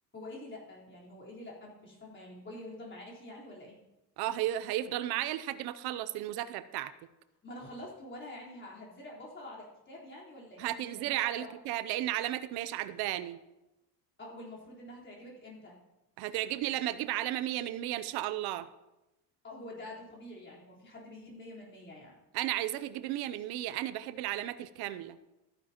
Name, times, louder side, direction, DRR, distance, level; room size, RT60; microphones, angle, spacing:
voice 1, 0.1-3.8 7.4-11.5 14.2-15.8 19.4-22.2, left 1 dB, 30° left, -4 dB, 3.9 m, -47 dB
voice 2, 4.2-6.9 10.6-13.4 16.2-18.7 22.3-25.2, right 13 dB, 80° right, 14 dB, 0.7 m, -34 dB
14.0 x 9.8 x 2.9 m, 0.96 s
cardioid pair, 130°, 37 cm